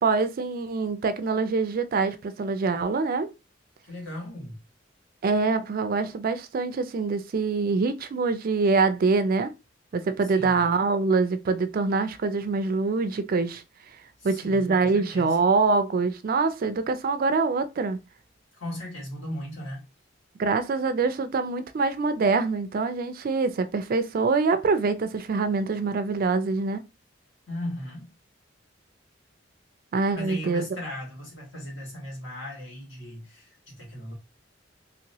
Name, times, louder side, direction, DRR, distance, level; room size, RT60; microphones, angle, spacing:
voice 1, 0.0-3.3 5.2-9.5 9.9-13.6 14.2-18.0 20.4-26.8 29.9-30.7, right 4 dB, 45° right, 0.4 m, -24 dB
voice 2, 3.8-4.6 10.3-10.7 14.2-15.4 18.6-19.8 27.5-28.1 30.1-34.1, equal, 75° left, 1.8 m, -37 dB
2.9 x 2.9 x 2.7 m
head